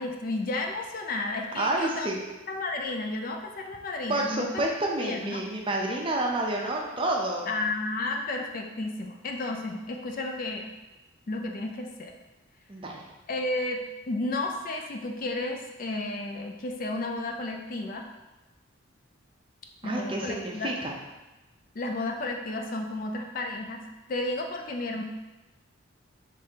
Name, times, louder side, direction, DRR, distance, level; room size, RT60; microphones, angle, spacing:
voice 1, 0.0-2.1 2.5-4.6 5.0-5.4 7.5-10.7 11.3-12.2 13.3-18.1 19.8-20.7 21.8-23.8 24.1-25.0, left 2 dB, 40° left, 3 dB, 0.4 m, -32 dB
voice 2, 1.6-2.2 4.1-7.5 12.7-13.0 19.8-20.9, right 1 dB, 25° right, 0 dB, 0.5 m, -29 dB
5.1 x 3.2 x 2.8 m, 1.1 s
head